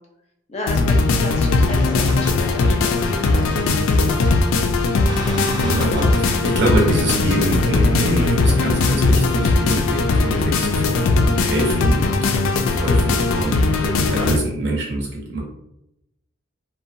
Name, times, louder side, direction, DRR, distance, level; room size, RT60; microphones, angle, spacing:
voice 1, 0.5-3.5 13.8-14.1, left 1 dB, 35° left, 0 dB, 0.5 m, -32 dB
sound 1, 0.7-14.4, left 3 dB, 85° left, 0.3 m, -19 dB
sound 2, 1.6-9.6, equal, 20° right, 0.4 m, -34 dB
voice 2, 5.1-15.4, right 1 dB, 55° right, -2 dB, 0.8 m, -25 dB
2.6 x 2.2 x 2.5 m, 0.83 s
head